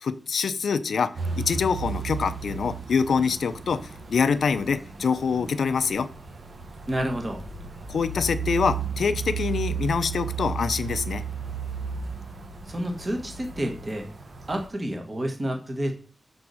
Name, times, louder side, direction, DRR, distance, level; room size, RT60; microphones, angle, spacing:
voice 1, 0.0-6.1 7.9-11.2, left 5 dB, 80° left, 12 dB, 0.5 m, -25 dB
sound 1, 1.1-14.7, right 6 dB, 55° right, 1.3 m, -34 dB
voice 2, 6.9-7.4 12.7-14.1 14.5-15.9, right 1 dB, 25° right, 3 dB, 1.4 m, -29 dB
6.1 x 4.1 x 6.3 m, 0.38 s
wide cardioid pair, 175°, 0 cm